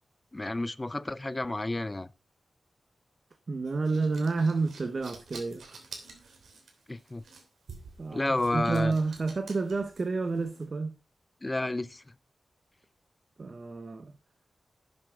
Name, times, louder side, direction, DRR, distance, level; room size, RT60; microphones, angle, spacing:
voice 1, 0.3-2.1 6.9-7.2 8.1-8.9 11.4-12.0, left 2 dB, 20° left, 0.4 m, -30 dB
voice 2, 3.5-5.8 8.0-11.0 13.4-14.1, right 3 dB, 40° right, 0.9 m, -30 dB
sound 1, 3.7-10.7, right 4 dB, 90° right, 2.9 m, -50 dB
11.5 x 7.9 x 3.7 m
wide cardioid pair, 145°, 0 cm